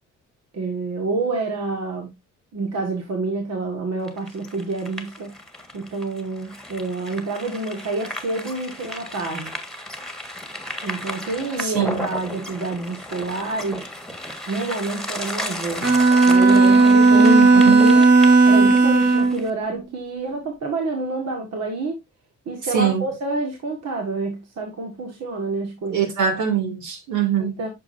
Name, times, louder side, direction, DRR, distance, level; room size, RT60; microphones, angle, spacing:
voice 1, 0.5-2.1 2.5-5.3 5.7-9.5 10.8-14.0 14.5-15.9 16.2-17.3 17.6-18.1 18.5-22.0 22.5-26.0 27.4-27.7, right 3 dB, 60° right, 1.8 m, -28 dB
sound 1, 4.0-19.5, left 1 dB, ahead, 1.6 m, -34 dB
voice 2, 11.6-12.1 17.1-18.0 22.7-23.0 25.9-27.5, right 6 dB, 75° right, 2.8 m, -22 dB
Bowed string instrument, 15.8-19.4, right 3 dB, 35° right, 1.6 m, -14 dB
8.6 x 6.1 x 2.6 m
cardioid pair, 90°, 30 cm